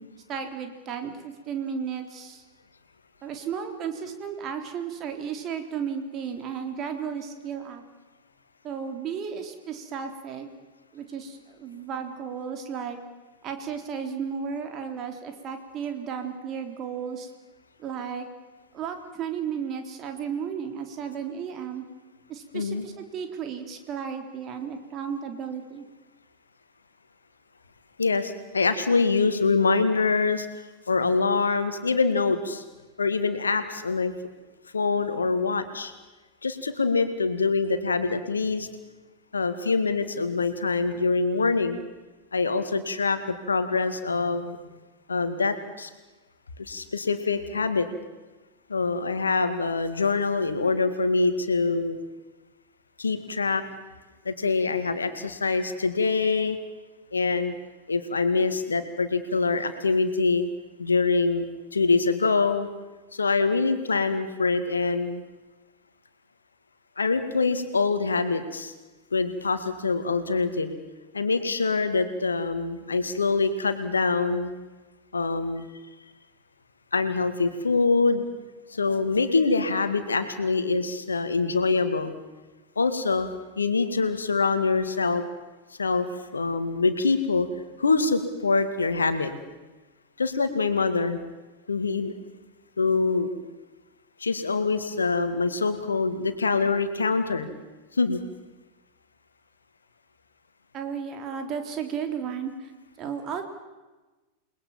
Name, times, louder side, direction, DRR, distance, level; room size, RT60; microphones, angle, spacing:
voice 1, 0.3-2.4 3.2-7.8 8.6-10.5 10.9-13.0 13.4-17.3 17.8-18.3 18.7-21.8 22.3-25.9 100.7-102.7 103.0-103.4, right 7 dB, 30° right, 5 dB, 3.6 m, -34 dB
voice 2, 22.5-22.9 28.0-32.6 33.0-34.1 34.7-35.9 36.4-38.7 39.3-41.8 42.3-44.6 45.1-45.9 46.6-47.9 48.7-52.0 53.0-53.6 54.2-56.6 57.1-57.5 57.9-60.5 60.8-61.5 61.7-62.7 63.1-65.2 67.0-68.7 69.1-70.8 71.1-74.5 75.1-75.7 76.9-78.3 78.7-82.1 82.8-83.3 83.6-85.2 85.8-86.1 86.3-87.5 87.8-89.3 90.2-91.2 91.7-92.1 92.8-93.3 94.2-97.5 97.9-98.2, left 4 dB, 75° left, 9 dB, 2.1 m, -24 dB
29.0 x 20.5 x 7.4 m, 1.2 s
figure-of-eight pair, 90°, 0 cm